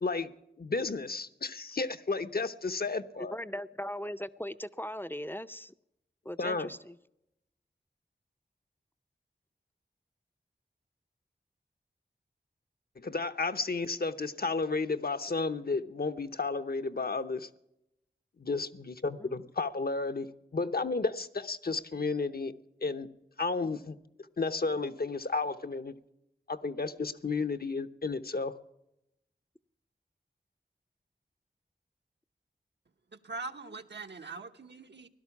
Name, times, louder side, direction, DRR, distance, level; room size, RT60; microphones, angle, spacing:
voice 1, 0.0-3.4 6.4-6.7 13.0-17.5 18.4-22.5 22.8-23.1 23.4-24.0 24.4-25.9 26.5-28.5, left 3 dB, 60° left, 0.8 m, -32 dB
voice 2, 3.2-5.7 6.2-7.0 19.2-19.4 33.6-33.7, equal, 10° left, 0.5 m, -39 dB
voice 3, 33.2-35.1, right 4 dB, 75° right, 1.0 m, -42 dB
17.0 x 12.0 x 7.1 m
wide cardioid pair, 65°, 18 cm